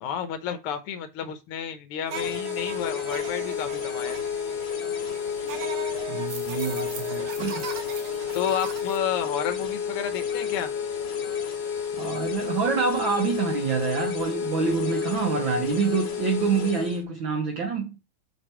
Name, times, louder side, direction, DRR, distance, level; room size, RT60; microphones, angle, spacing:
voice 1, 0.0-4.2 8.3-10.7, left 8 dB, 65° left, 1.4 m, -31 dB
sound 1, 2.1-17.0, left 7 dB, 85° left, 0.9 m, -31 dB
sound 2, 2.1-9.0, right 7 dB, 60° right, 1.6 m, -40 dB
voice 2, 6.1-7.7 12.0-18.0, right 5 dB, 80° right, 1.1 m, -27 dB
6.4 x 4.7 x 4.4 m
omnidirectional pair, 3.5 m